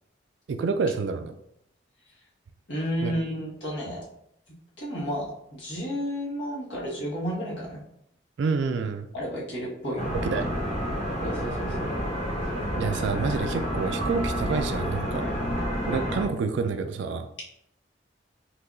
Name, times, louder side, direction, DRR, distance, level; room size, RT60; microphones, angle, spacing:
voice 1, 0.5-1.3 3.0-3.2 8.4-9.1 10.1-10.5 12.8-15.3 15.9-17.3, right 4 dB, 70° right, 7 dB, 0.3 m, -28 dB
voice 2, 2.7-4.0 4.8-7.8 9.1-10.0 11.2-11.9, equal, 70° left, -5 dB, 1.6 m, -32 dB
sound 1, 10.0-16.2, equal, 35° left, 1.1 m, -29 dB
5.7 x 2.7 x 2.6 m, 0.76 s
head